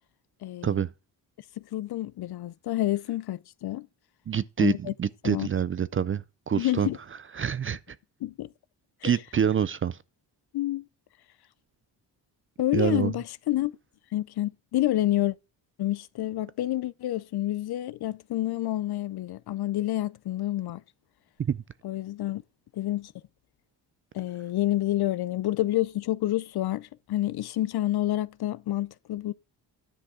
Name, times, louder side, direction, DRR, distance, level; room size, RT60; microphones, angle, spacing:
voice 1, 0.4-0.8 1.6-3.9 4.6-4.9 5.2-5.5 6.5-7.0 8.2-8.5 9.0-9.2 10.5-10.9 12.6-13.7 14.1-15.4 15.8-20.8 21.8-22.4 22.7-23.1 24.1-29.3, left 14 dB, 60° left, 0.5 m, -28 dB
voice 2, 4.3-6.9 7.4-7.8 9.0-10.0 12.7-13.1 21.4-21.6, right 8 dB, 30° right, 0.4 m, -26 dB
10.5 x 5.9 x 4.9 m
cardioid pair, 80°, 44 cm